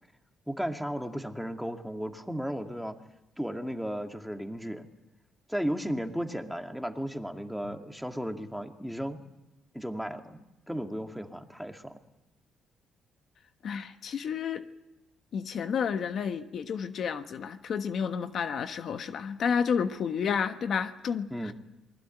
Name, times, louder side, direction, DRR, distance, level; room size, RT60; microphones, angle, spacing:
voice 1, 0.5-3.0 3.4-4.9 5.5-9.2 9.7-12.0 21.3-21.5, equal, ahead, 5 dB, 2.2 m, -35 dB
voice 2, 13.6-14.6 15.3-21.5, left 7 dB, 60° left, 9 dB, 1.3 m, -31 dB
27.5 x 20.5 x 9.1 m, 0.99 s
cardioid pair, 90°, 0 cm